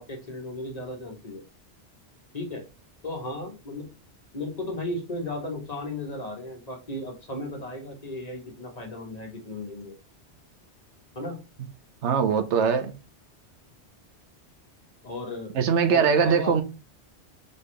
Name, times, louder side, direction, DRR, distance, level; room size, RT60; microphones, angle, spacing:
voice 1, 0.0-1.4 2.3-2.6 3.0-3.9 4.3-9.9 11.1-11.4 15.0-15.6 15.9-16.6, left 1 dB, 35° left, 1.2 m, -35 dB
voice 2, 12.0-12.9 15.6-16.6, right 6 dB, 80° right, 1.0 m, -21 dB
4.2 x 3.5 x 3.2 m
omnidirectional pair, 1.2 m